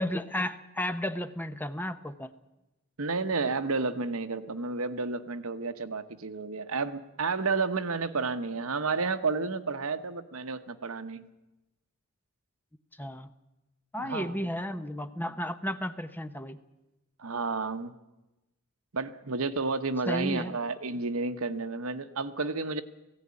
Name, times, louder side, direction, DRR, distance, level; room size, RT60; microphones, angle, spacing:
voice 1, 0.0-2.3 13.0-13.3 13.9-16.6 20.1-20.6, equal, 10° left, 11 dB, 0.7 m, -33 dB
voice 2, 3.0-11.3 14.0-14.4 17.2-17.9 18.9-22.8, right 4 dB, 70° right, 10 dB, 1.1 m, -31 dB
17.5 x 16.0 x 9.7 m, 1.0 s
head